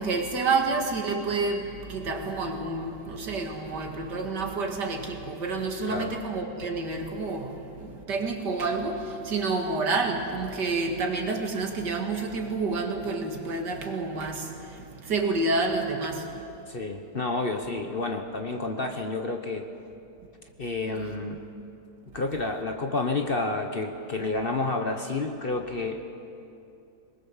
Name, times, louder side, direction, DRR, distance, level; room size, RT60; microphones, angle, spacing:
voice 1, 0.0-16.3, right 3 dB, 75° right, 3 dB, 2.6 m, -29 dB
voice 2, 16.7-19.7 20.6-21.4 22.1-26.0, left 3 dB, 35° left, 5 dB, 1.1 m, -30 dB
23.0 x 20.5 x 7.3 m, 2.7 s
omnidirectional pair, 1.8 m